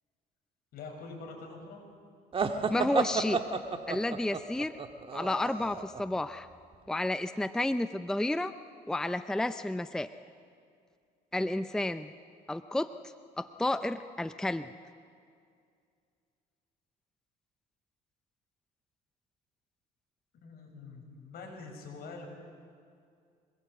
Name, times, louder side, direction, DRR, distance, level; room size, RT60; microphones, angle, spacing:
voice 1, 0.7-1.8 20.4-22.3, left 4 dB, 65° left, 2 dB, 6.3 m, -45 dB
sound 1, 2.3-6.0, right 5 dB, 35° right, 1.7 m, -32 dB
voice 2, 2.7-3.4 3.9-4.7 5.1-6.5 6.9-8.5 8.9-10.1 11.3-12.1 12.5-12.9 13.4-14.7, left 1 dB, 5° left, 11 dB, 0.5 m, -31 dB
25.5 x 20.5 x 8.3 m, 2.3 s
cardioid pair, 110°, 17 cm